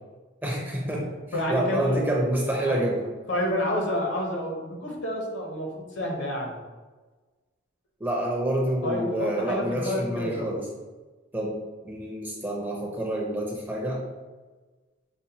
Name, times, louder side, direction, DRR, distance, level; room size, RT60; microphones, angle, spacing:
voice 1, 0.4-1.1 1.5-3.1 8.0-10.6 11.3-11.6 11.8-14.0, right 1 dB, 10° right, -3 dB, 0.5 m, -27 dB
voice 2, 1.3-2.0 2.6-2.8 3.3-6.6 8.8-10.6, left 1 dB, 60° left, 0 dB, 0.8 m, -29 dB
5.2 x 2.1 x 2.8 m, 1.3 s
head